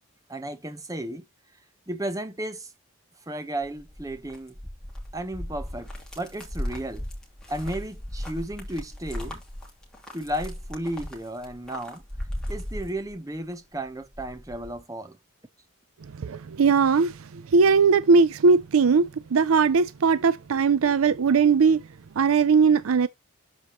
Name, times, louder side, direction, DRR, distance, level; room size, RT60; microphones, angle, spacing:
voice 1, 0.3-1.2 1.9-2.7 3.3-4.5 5.1-5.9 6.2-7.0 7.5-9.4 10.1-12.0 12.5-15.2, right 1 dB, 15° right, 0.8 m, -33 dB
sound 1, 3.6-13.5 13.9-14.8, equal, 5° left, 2.7 m, -37 dB
voice 2, 16.2-21.8 22.2-23.1, right 5 dB, 75° right, 0.5 m, -20 dB
12.5 x 4.5 x 3.0 m
head